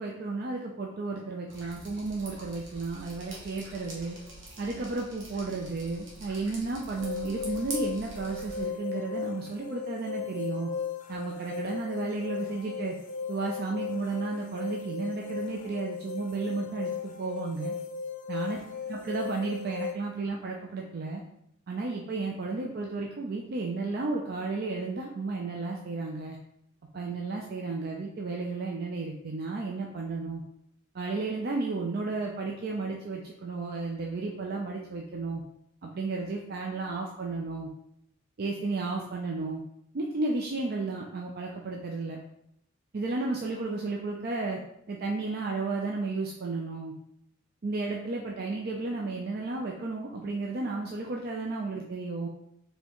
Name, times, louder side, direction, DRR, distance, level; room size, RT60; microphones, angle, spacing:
voice 1, 0.0-4.2 4.6-10.7 11.1-13.0 13.3-17.7 18.3-18.6 18.9-21.2 21.7-26.4 26.9-30.4 30.9-35.4 35.8-37.7 38.4-39.6 39.9-42.2 42.9-44.6 44.9-46.9 47.6-52.3, right 3 dB, 50° right, 0 dB, 0.4 m, -33 dB
Drip, 1.5-8.6, right 1 dB, 70° right, 1.1 m, -45 dB
sound 1, 6.9-19.9, left 6 dB, 40° left, 0.5 m, -36 dB
4.3 x 3.3 x 3.0 m, 0.78 s
head